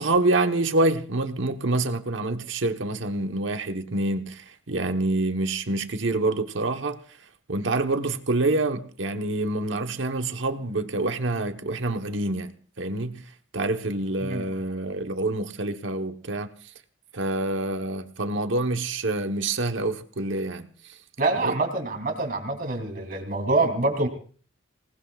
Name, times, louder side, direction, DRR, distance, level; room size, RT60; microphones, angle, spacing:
voice 1, 0.0-7.0 7.5-13.3 13.5-16.5 17.1-20.7 21.4-21.6, right 2 dB, 80° right, 1.2 m, -26 dB
voice 2, 21.2-24.1, right 2 dB, 50° right, 3.2 m, -25 dB
26.5 x 19.0 x 2.4 m
head